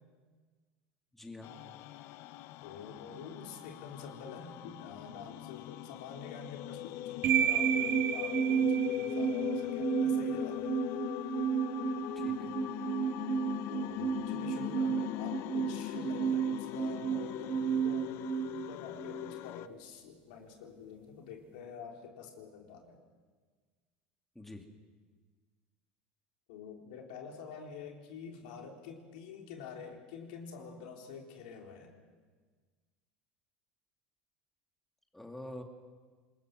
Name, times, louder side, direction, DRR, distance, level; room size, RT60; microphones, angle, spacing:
voice 1, 1.1-1.5 12.2-12.5 24.3-24.6 35.1-35.6, left 1 dB, 5° left, 3 dB, 2.5 m, -46 dB
sound 1, 1.4-19.7, left 15 dB, 60° left, 0.7 m, -40 dB
voice 2, 2.6-10.8 13.7-18.2 18.5-23.0 26.5-31.9, left 6 dB, 80° left, 2 dB, 3.9 m, -47 dB
sound 2, 7.2-19.3, right 8 dB, 50° right, 2.5 m, -32 dB
27.5 x 21.0 x 6.1 m, 1.5 s
supercardioid pair, 110°, 5 cm